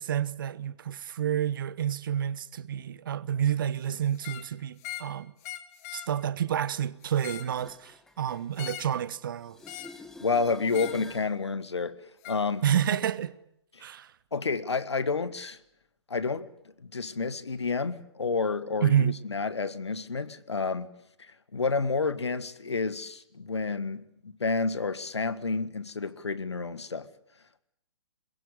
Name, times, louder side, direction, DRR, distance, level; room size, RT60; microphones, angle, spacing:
voice 1, 0.0-5.3 5.9-9.6 12.6-13.3 13.8-14.1 18.8-19.2, right 9 dB, 50° right, 1.0 m, -29 dB
sound 1, 4.1-4.5 4.8-5.1 5.4-6.1 7.0-7.5 8.6-9.0 9.6-10.0 10.7-11.0 12.2-12.4, left 14 dB, 35° left, 1.8 m, -41 dB
sound 2, 7.1-9.2 9.4-11.4 17.1-17.2, left 2 dB, 5° left, 1.7 m, -49 dB
voice 2, 10.2-12.0 12.2-12.6 13.8-13.9 14.3-15.6 16.1-16.5 16.8-20.9 21.5-27.1, left 4 dB, 70° left, 1.6 m, -30 dB
22.0 x 22.0 x 9.9 m
figure-of-eight pair, 125°, 15 cm